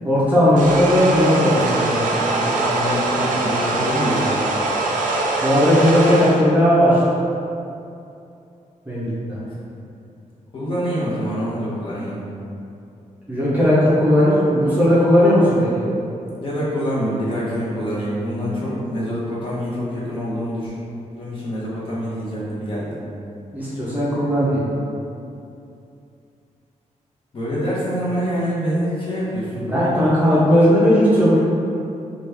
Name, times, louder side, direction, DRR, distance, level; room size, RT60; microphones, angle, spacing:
voice 1, 0.0-2.2 5.4-7.0 8.9-9.4 13.3-15.7 23.5-24.7 29.5-31.4, equal, 10° right, -11 dB, 0.6 m, -16 dB
sound 1, 0.6-6.4, right 2 dB, 85° right, 0.4 m, -22 dB
voice 2, 2.4-4.4 10.5-12.2 16.3-20.7 21.1-22.9 27.3-29.6, equal, 40° left, -8 dB, 1.0 m, -25 dB
3.0 x 2.4 x 3.3 m, 2.6 s
wide cardioid pair, 130°, 13 cm